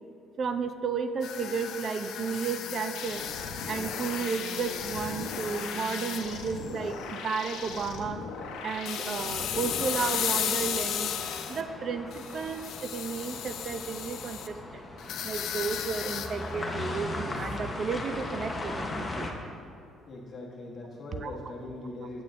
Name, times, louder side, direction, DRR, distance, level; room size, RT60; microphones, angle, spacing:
voice 1, 0.4-3.2 3.7-8.2 8.6-11.1 11.5-14.8 15.2-19.3 21.2-21.3, right 5 dB, 35° right, 9 dB, 0.3 m, -33 dB
sound 1, 1.2-7.3 7.7-8.0 8.9-11.6 12.1-14.5 15.0-17.0 17.4-17.6, left 9 dB, 60° left, 0.3 m, -35 dB
sound 2, 2.9-10.7, left 5 dB, 85° left, 0.7 m, -39 dB
sound 3, 9.5-19.3, left 2 dB, 15° left, 0.6 m, -38 dB
voice 2, 20.1-22.2, left 2 dB, 35° left, -2 dB, 1.1 m, -40 dB
8.5 x 8.3 x 2.5 m, 2.5 s
cardioid pair, 170°, 0 cm